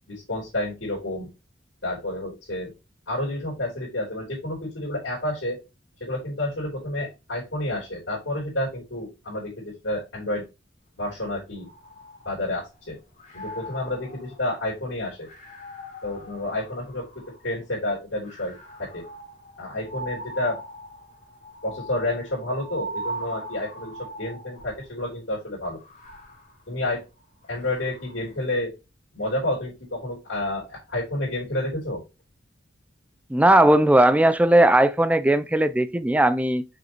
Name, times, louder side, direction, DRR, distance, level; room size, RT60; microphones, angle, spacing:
voice 1, 0.1-1.3 1.8-2.7 3.1-5.6 6.0-10.4 11.0-11.7 12.2-13.0 13.3-15.3 16.0-19.0 19.6-20.6 21.6-25.8 26.7-27.0 27.5-28.7 29.1-32.0, left 1 dB, 70° left, 3.3 m, -30 dB
sound 1, 11.6-12.8 13.2-17.5 18.2-24.9 25.7-28.3, right 1 dB, 40° left, 3.0 m, -40 dB
voice 2, 33.3-36.7, right 1 dB, 5° right, 0.4 m, -18 dB
6.2 x 5.2 x 2.9 m
head